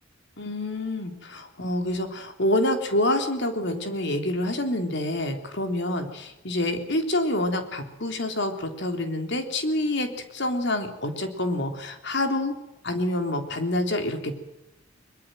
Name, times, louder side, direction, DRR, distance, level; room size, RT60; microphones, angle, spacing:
voice 1, 0.4-12.6 12.8-14.4, left 1 dB, 65° left, 6 dB, 3.5 m, -27 dB
22.5 x 22.0 x 7.8 m, 0.92 s
head